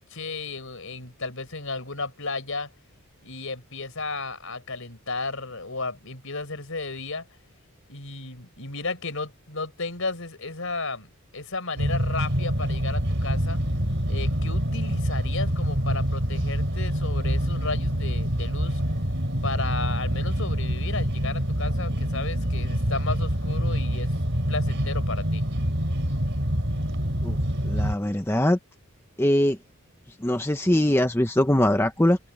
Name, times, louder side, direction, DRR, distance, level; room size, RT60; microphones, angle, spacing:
voice 1, 0.0-2.7 3.2-7.2 7.9-13.6 14.1-18.8 19.4-24.1 24.5-25.4, left 3 dB, 65° left, 5.1 m, -34 dB
sound 1, 11.8-27.9, equal, 55° right, 4.2 m, -26 dB
voice 2, 27.6-28.6 29.2-29.6 30.2-32.2, left 1 dB, 10° left, 0.9 m, -22 dB
open air
head